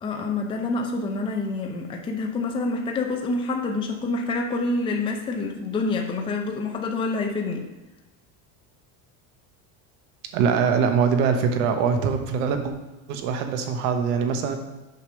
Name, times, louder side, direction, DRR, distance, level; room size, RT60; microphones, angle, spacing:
voice 1, 0.0-7.7, left 3 dB, 15° left, 2 dB, 0.5 m, -27 dB
voice 2, 10.3-12.7 13.1-14.6, right 6 dB, 70° right, 6 dB, 1.1 m, -23 dB
6.7 x 5.1 x 5.0 m, 1.1 s
cardioid pair, 160°, 42 cm